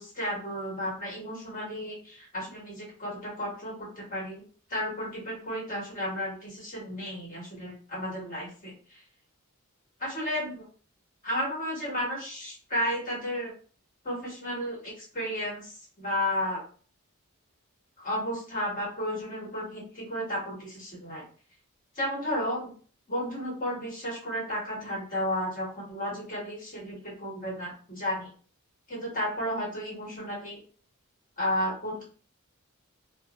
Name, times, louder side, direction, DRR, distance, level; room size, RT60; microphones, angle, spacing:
voice 1, 0.0-4.4 4.7-9.0 10.0-10.6 11.2-13.5 14.0-16.6 18.0-21.2 21.9-22.7 23.1-28.3 28.9-30.6 31.4-32.0, equal, 35° left, -5 dB, 1.3 m, -33 dB
2.5 x 2.0 x 2.9 m, 0.42 s
head